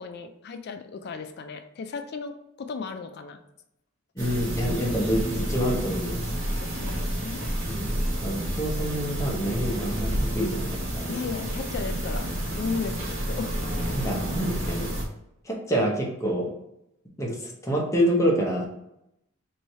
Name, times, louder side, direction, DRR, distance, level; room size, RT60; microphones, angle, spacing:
voice 1, 0.0-3.4 6.5-7.5 11.1-12.3 12.5-13.0 13.3-13.5, left 5 dB, 50° left, 7 dB, 0.3 m, -35 dB
voice 2, 4.2-6.3 7.7-11.0 13.9-14.9 15.4-16.5 17.2-18.7, equal, 15° left, -2 dB, 0.8 m, -27 dB
sound 1, 4.2-15.0, equal, 65° right, 1.1 m, -30 dB
3.1 x 2.7 x 4.1 m, 0.83 s
head